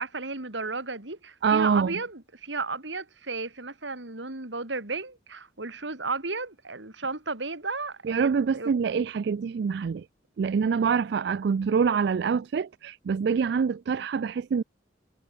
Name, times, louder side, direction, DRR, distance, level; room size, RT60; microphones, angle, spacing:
voice 1, 0.0-8.7, right 3 dB, 75° right, 3.2 m, -34 dB
voice 2, 1.4-1.9 8.0-10.0 10.4-14.6, right 6 dB, 60° right, 0.3 m, -25 dB
head